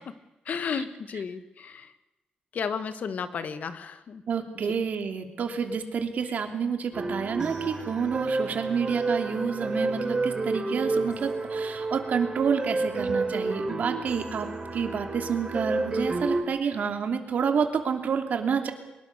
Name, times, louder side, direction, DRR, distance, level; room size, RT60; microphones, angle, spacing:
voice 1, 0.5-1.9 2.5-4.2, left 6 dB, 65° left, 11 dB, 1.6 m, -33 dB
voice 2, 4.3-18.7, right 6 dB, 65° right, 6 dB, 3.0 m, -29 dB
sound 1, 6.9-16.4, right 3 dB, 25° right, 4.0 m, -30 dB
24.5 x 21.5 x 6.8 m, 1.0 s
wide cardioid pair, 135°, 3 cm